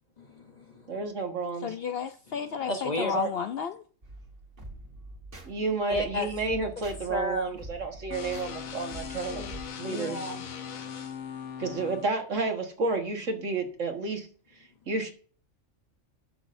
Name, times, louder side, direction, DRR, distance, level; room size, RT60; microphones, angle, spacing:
voice 1, 0.2-1.0 2.6-3.1 5.9-6.8 7.1-7.6 9.3-10.4, left 1 dB, 35° left, 0.9 m, -34 dB
voice 2, 0.9-1.7 3.0-3.3 5.4-9.4 9.8-10.3 11.6-14.3 14.9-15.1, right 3 dB, 70° right, 1.9 m, -31 dB
voice 3, 1.6-3.8, left 7 dB, 65° left, 0.6 m, -32 dB
sound 1, 4.0-9.7, right 1 dB, 45° right, 1.9 m, -45 dB
sound 2, 8.1-12.1, left 7 dB, 85° left, 1.3 m, -39 dB
17.0 x 6.1 x 2.6 m
omnidirectional pair, 1.4 m